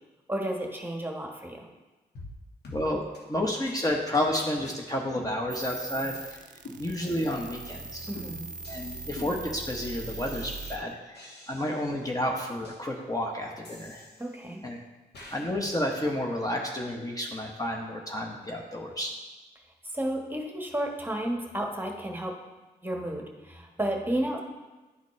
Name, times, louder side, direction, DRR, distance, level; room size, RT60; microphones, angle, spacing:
voice 1, 0.3-1.7 8.1-8.5 14.2-14.6 19.8-22.3 22.8-24.4, right 1 dB, 10° right, 1 dB, 1.2 m, -32 dB
sound 1, 2.1-2.4 2.6-2.8 3.1-3.2 3.6-3.7 4.1-4.3 4.6-4.7 5.1-5.8 6.1-6.2 6.6-7.3 7.6-7.8 8.1-10.8 11.1-12.1 12.6-12.8 13.6-14.6 15.1-15.5, left 2 dB, 70° left, 1.5 m, -47 dB
voice 2, 2.7-3.0 3.3-6.4 6.8-8.1 8.7-11.2 11.5-14.0 14.6-14.8 15.3-19.1, left 1 dB, 20° left, 0 dB, 0.9 m, -31 dB
sound 2, 5.5-10.8, right 3 dB, 50° right, 0.6 m, -40 dB
10.5 x 4.0 x 3.2 m, 1.2 s
supercardioid pair, 50°, 17 cm